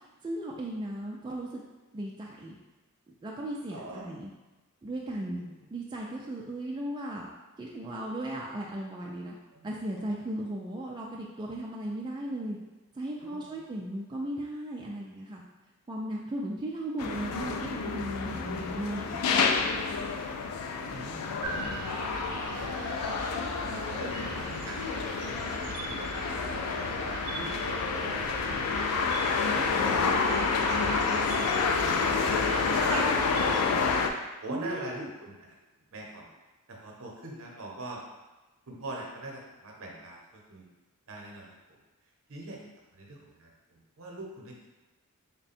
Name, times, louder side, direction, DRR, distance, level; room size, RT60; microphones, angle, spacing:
voice 1, 0.2-1.6 1.9-2.6 3.2-4.3 4.8-5.4 5.7-7.3 7.6-9.4 9.6-12.6 12.9-15.4 15.9-19.2 34.5-35.1, right 1 dB, 20° right, -3 dB, 0.3 m, -36 dB
voice 2, 3.7-4.0 5.4-5.5 9.5-9.8 13.2-13.6 20.9-22.8 23.3-24.9 25.3-26.6 27.3-28.8 29.4-30.2 30.6-31.7 32.2-34.0 34.4-35.4 35.9-36.3 36.7-38.0 38.7-40.7 41.1-41.5 42.3-42.6 42.9-44.5, right 2 dB, 65° right, -1 dB, 0.8 m, -44 dB
sound 1, 17.0-34.1, left 5 dB, 90° left, 0.4 m, -29 dB
sound 2, 21.4-33.7, right 4 dB, 90° right, 0.4 m, -39 dB
3.5 x 2.2 x 4.1 m, 1.2 s
head